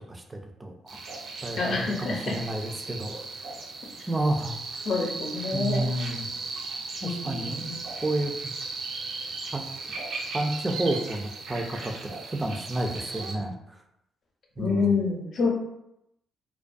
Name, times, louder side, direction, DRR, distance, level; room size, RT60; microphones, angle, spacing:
voice 1, 0.1-1.0 1.4-3.3 4.1-4.6 5.5-6.3 7.0-7.7 8.0-8.5 9.5-9.6 10.3-11.9 12.3-13.8 14.6-14.9, right 1 dB, 20° right, 2 dB, 0.4 m, -30 dB
sound 1, 0.9-13.3, right 3 dB, 75° right, 0.5 m, -37 dB
voice 2, 1.6-2.3 4.8-5.9 7.0-7.8 14.6-15.5, left 4 dB, 60° left, -1 dB, 0.6 m, -27 dB
2.3 x 2.2 x 2.5 m, 0.81 s
cardioid pair, 90°, 0 cm